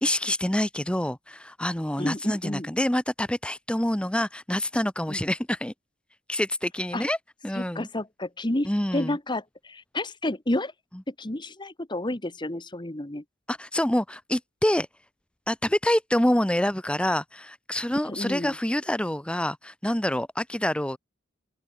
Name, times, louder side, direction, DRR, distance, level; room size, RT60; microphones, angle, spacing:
voice 1, 0.0-5.7 6.3-7.2 7.4-7.9 8.6-9.2 13.5-14.9 15.5-21.0, left 1 dB, 5° left, 0.7 m, -26 dB
voice 2, 2.0-2.7 5.1-5.2 6.9-7.0 7.5-10.7 11.1-13.2 18.1-18.5, left 1 dB, 25° left, 1.5 m, -30 dB
open air
head